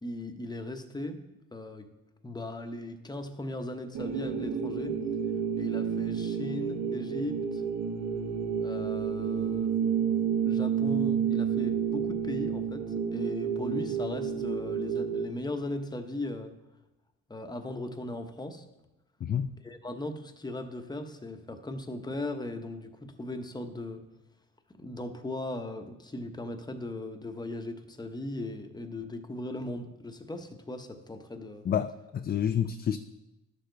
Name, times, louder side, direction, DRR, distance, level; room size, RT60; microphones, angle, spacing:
voice 1, 0.0-1.2 1.5-1.9 2.2-5.0 5.6-7.6 8.6-9.7 10.1-16.5 17.3-18.7 19.6-24.0 24.7-31.7, left 1 dB, 15° left, 0.9 m, -38 dB
sound 1, 3.9-15.3, right 7 dB, 75° right, 1.3 m, -30 dB
voice 2, 19.2-19.5 31.7-33.0, left 8 dB, 35° left, 0.4 m, -29 dB
11.5 x 6.7 x 3.9 m
cardioid pair, 90°, 30 cm